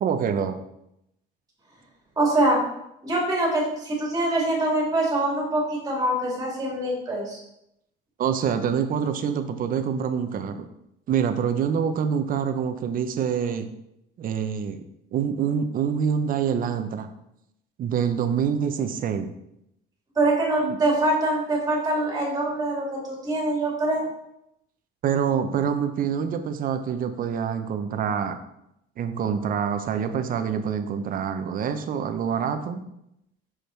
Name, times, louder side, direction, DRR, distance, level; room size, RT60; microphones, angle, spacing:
voice 1, 0.0-0.6 8.2-10.7 11.1-13.7 14.2-14.8 15.1-17.1 17.8-19.3 20.6-20.8 25.0-28.4 29.0-32.8, right 7 dB, 45° right, 8 dB, 0.7 m, -26 dB
voice 2, 2.2-2.6 3.0-7.4 20.2-24.1, right 1 dB, 20° right, -3 dB, 2.4 m, -24 dB
6.4 x 5.3 x 4.4 m, 0.81 s
cardioid pair, 145°, 21 cm